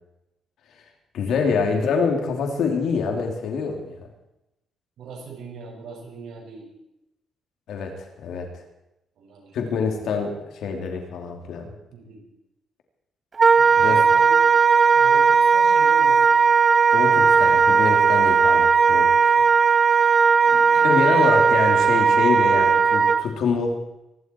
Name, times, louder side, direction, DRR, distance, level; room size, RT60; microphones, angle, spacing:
voice 1, 1.1-4.1 7.7-8.6 9.5-11.7 13.8-14.0 16.9-19.4 20.8-23.8, left 5 dB, 75° left, 3 dB, 3.3 m, -26 dB
voice 2, 5.0-6.7 9.1-9.6 11.9-12.2 13.6-14.4 14.9-16.5 17.4-18.2 20.4-21.5 22.5-22.8, right 4 dB, 70° right, -1 dB, 6.6 m, -41 dB
Wind instrument woodwind instrument, 13.4-23.3, right 5 dB, 35° right, 0.5 m, -17 dB
25.0 x 12.0 x 4.7 m, 0.91 s
cardioid pair, 90°, 0 cm